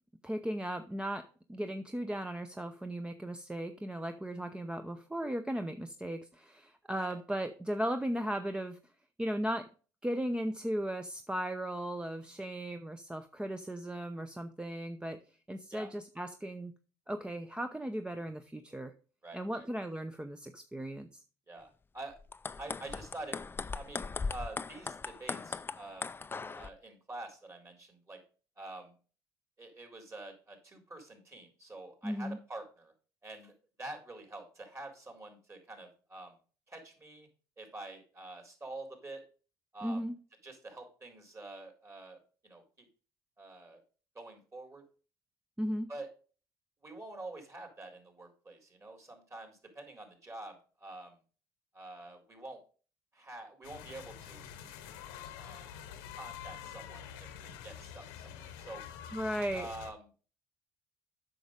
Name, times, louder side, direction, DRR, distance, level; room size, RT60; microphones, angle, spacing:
voice 1, 0.2-8.8 9.2-9.7 10.0-15.2 15.5-16.7 17.1-18.9 19.3-21.2 32.0-32.4 39.8-40.1 45.6-45.9 59.1-59.7, equal, 10° right, 8 dB, 0.7 m, -36 dB
voice 2, 19.2-19.7 21.5-22.2 22.6-23.4 23.7-26.1 26.5-28.2 28.6-28.9 29.6-32.9 33.2-33.5 33.8-36.3 36.7-37.3 37.6-39.2 39.7-40.1 40.4-42.9 43.4-43.8 44.1-44.8 45.9-46.1 46.8-51.1 51.7-52.6 53.1-54.5 55.4-55.7 56.1-58.8 59.5-60.1, right 2 dB, 30° right, 4 dB, 3.9 m, -47 dB
sound 1, 22.2-26.7, left 4 dB, 20° left, 0.5 m, -39 dB
sound 2, 53.6-59.9, left 9 dB, 85° left, 1.1 m, -47 dB
7.8 x 6.3 x 5.2 m, 0.37 s
supercardioid pair, 70°, 10 cm